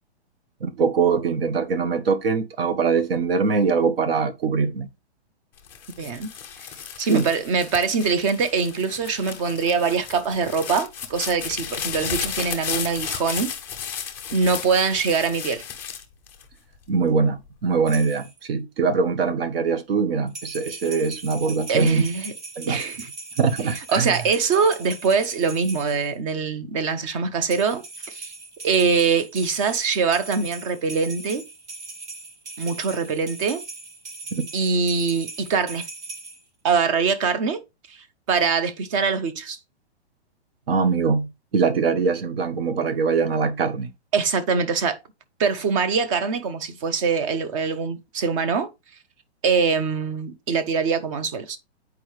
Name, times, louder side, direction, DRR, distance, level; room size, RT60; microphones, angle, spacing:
voice 1, 0.6-4.9 7.1-7.3 16.9-22.1 22.6-22.8 23.4-24.2 34.3-34.4 40.7-43.9, right 5 dB, 60° right, 1.2 m, -22 dB
sound 1, 5.6-16.9 17.5-18.0, left 8 dB, 5° left, 0.5 m, -34 dB
voice 2, 6.0-6.3 7.0-13.5 14.3-15.6 21.7-22.3 22.7-23.1 23.7-28.3 28.6-31.5 32.6-33.6 34.5-35.9 36.6-37.6 37.9-38.0 38.3-39.6 44.1-45.0 45.4-48.7 49.4-51.6, right 5 dB, 30° right, 0.8 m, -23 dB
sound 2, 17.9-18.4 20.3-26.1 27.4-36.4, right 3 dB, 85° right, 2.2 m, -39 dB
8.4 x 4.7 x 3.2 m
hypercardioid pair, 155°, 34 cm